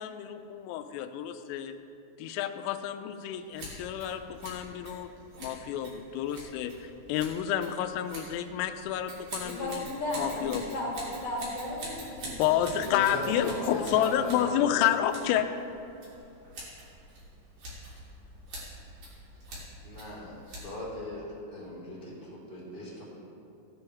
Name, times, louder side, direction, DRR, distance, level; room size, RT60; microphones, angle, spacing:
voice 1, 0.0-1.8 2.2-5.1 5.4-9.9 10.1-10.8 12.4-15.5, left 10 dB, 90° left, 9 dB, 3.3 m, -30 dB
Scissors, 3.5-21.0, right 1 dB, 50° right, 4.6 m, -46 dB
voice 2, 9.4-12.8 13.3-14.8, left 1 dB, 40° left, -5 dB, 2.4 m, -36 dB
voice 3, 12.8-14.8 19.8-23.0, left 1 dB, 15° right, -7 dB, 2.4 m, -38 dB
16.5 x 10.5 x 3.5 m, 2.7 s
omnidirectional pair, 5.8 m